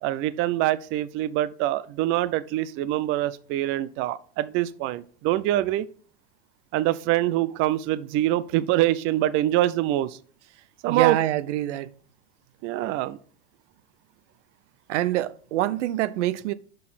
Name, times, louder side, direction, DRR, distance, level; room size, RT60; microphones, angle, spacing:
voice 1, 0.0-5.9 6.7-10.2 10.8-11.2 12.6-13.2, right 14 dB, 35° right, 0.4 m, -24 dB
voice 2, 10.9-11.9 14.9-16.5, right 14 dB, 70° right, 0.7 m, -25 dB
6.5 x 5.5 x 4.0 m
hypercardioid pair, 105°, 37 cm